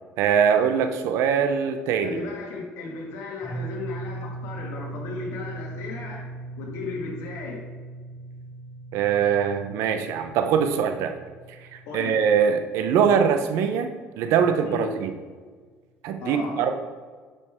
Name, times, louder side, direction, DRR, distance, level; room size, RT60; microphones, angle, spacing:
voice 1, 0.2-2.2 8.9-11.2 11.7-13.9 14.2-15.1 16.0-16.7, right 7 dB, 75° right, 7 dB, 0.8 m, -22 dB
voice 2, 2.0-6.3 6.6-7.7 11.9-12.2 14.6-14.9 16.2-16.7, left 3 dB, 80° left, 0 dB, 2.0 m, -35 dB
sound 1, 3.4-14.0, right 3 dB, 10° left, 1.8 m, -39 dB
11.0 x 5.4 x 3.6 m, 1.5 s
cardioid pair, 125°, 5 cm